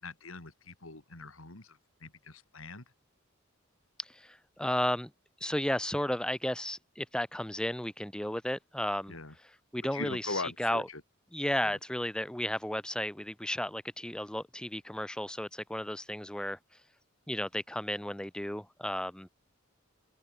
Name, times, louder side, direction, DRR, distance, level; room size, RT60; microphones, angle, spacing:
voice 1, 0.0-2.8 9.1-9.3 9.9-11.0, left 3 dB, 90° left, 3.9 m, -41 dB
voice 2, 4.0-5.1 5.4-9.1 9.7-10.9 11.3-16.6 17.3-19.3, left 1 dB, 5° left, 0.8 m, -33 dB
head